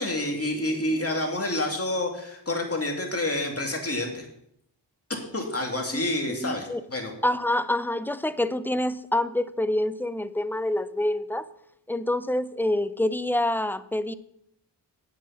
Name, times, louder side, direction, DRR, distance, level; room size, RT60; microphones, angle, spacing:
voice 1, 0.0-4.3 5.1-7.1, left 1 dB, 30° left, 2 dB, 2.6 m, -28 dB
voice 2, 6.3-6.8 7.2-11.5 11.9-14.1, left 1 dB, 5° left, 14 dB, 0.5 m, -26 dB
8.5 x 7.5 x 5.8 m, 0.74 s
cardioid pair, 45°, 45 cm